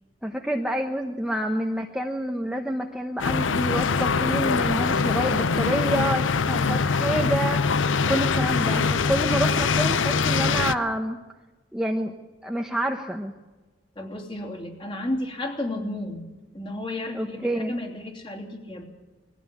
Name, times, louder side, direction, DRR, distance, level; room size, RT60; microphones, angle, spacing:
voice 1, 0.2-11.2 11.7-12.1 12.4-13.3 17.1-17.7, right 1 dB, 5° right, 2 dB, 0.9 m, -28 dB
sound 1, 3.2-10.7, left 5 dB, 90° left, 0.6 m, -23 dB
voice 2, 14.0-16.2 16.5-18.8, left 1 dB, 25° left, 1 dB, 2.9 m, -32 dB
21.0 x 15.0 x 8.5 m, 1.3 s
head